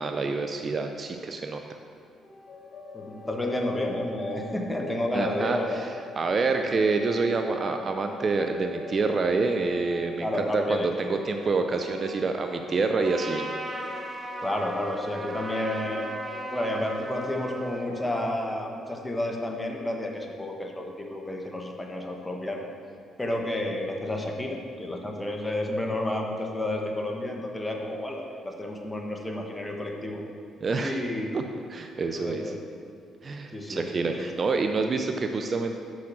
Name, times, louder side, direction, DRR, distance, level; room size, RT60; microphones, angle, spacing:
voice 1, 0.0-1.6 5.1-13.4 30.6-31.0 31.3-31.4 31.7-32.4 33.2-35.8, right 4 dB, 40° right, 5 dB, 0.5 m, -27 dB
sound 1, 2.2-20.0, left 3 dB, 55° left, 1.5 m, -43 dB
voice 2, 2.9-5.8 6.4-6.8 10.2-11.1 14.4-16.2 16.5-22.7 23.2-30.2 30.8-31.3 32.1-32.7 33.5-34.3, left 1 dB, 15° left, 1 dB, 1.2 m, -31 dB
Trumpet, 13.0-17.9, right 2 dB, 25° right, 1.0 m, -37 dB
6.2 x 5.8 x 6.1 m, 2.3 s
supercardioid pair, 70°, 0 cm